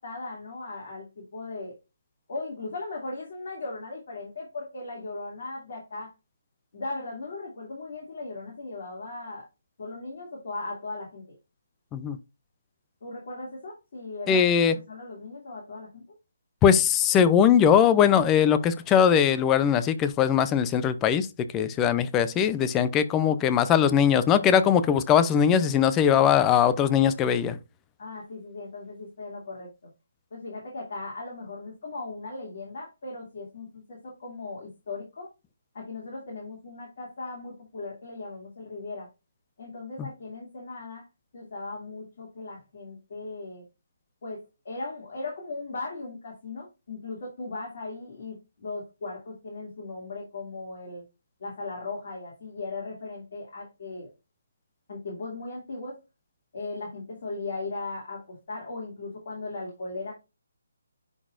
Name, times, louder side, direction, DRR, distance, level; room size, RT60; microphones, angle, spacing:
voice 1, 0.0-1.7 2.3-6.1 6.7-9.5 9.8-11.2 13.0-14.5 14.9-16.0 28.0-29.7 30.3-35.3 35.7-39.1 39.6-41.0 41.3-43.6 44.2-51.0 51.4-54.1 54.9-56.0 56.5-60.1, left 3 dB, 50° left, 2.6 m, -38 dB
voice 2, 14.3-14.7 16.6-21.3 21.5-27.6 40.0-40.1, left 8 dB, 15° left, 0.6 m, -21 dB
10.5 x 4.0 x 2.6 m
figure-of-eight pair, 150°, 0 cm